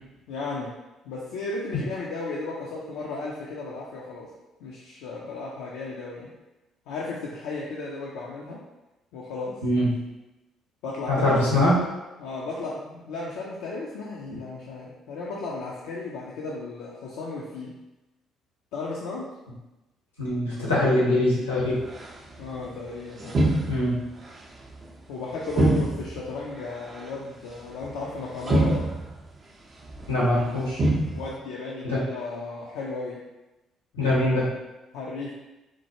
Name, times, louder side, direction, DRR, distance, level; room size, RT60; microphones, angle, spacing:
voice 1, 0.3-0.7 1.0-4.3 4.6-6.3 6.9-8.6 9.1-9.6 10.8-11.7 12.2-17.8 18.7-19.3 22.4-23.6 25.1-28.9 31.1-33.2 33.9-34.4 34.9-35.3, left 3 dB, 65° left, -4 dB, 0.4 m, -35 dB
voice 2, 11.1-11.7 20.2-21.8 23.7-24.0 30.1-30.8 31.8-32.0 34.0-34.5, left 1 dB, 90° left, -7 dB, 1.0 m, -22 dB
sound 1, 21.6-22.8 23.2-24.3 24.7-24.9 25.5-26.3 26.6-27.1 27.8-28.0 28.4-29.3 29.8-30.3 30.7-31.4, right 1 dB, 35° right, 0.5 m, -26 dB
4.3 x 2.2 x 2.9 m, 1.0 s
figure-of-eight pair, 45°, 0 cm